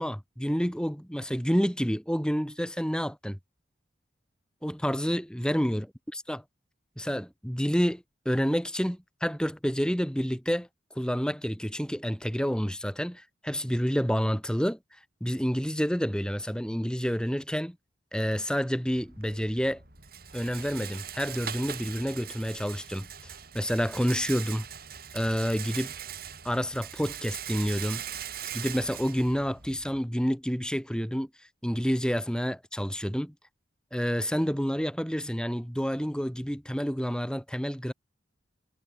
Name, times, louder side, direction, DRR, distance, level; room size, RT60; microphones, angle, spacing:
voice 1, 0.0-3.4 4.6-5.9 6.1-6.4 7.0-10.7 11.0-14.8 15.2-17.8 18.1-19.8 20.3-23.1 23.5-24.7 25.1-25.9 26.4-28.0 28.5-31.3 31.6-33.3 33.9-37.9, equal, 5° left, 5.6 m, -29 dB
Rattle, 19.0-30.0, right 9 dB, 50° right, 7.1 m, -41 dB
head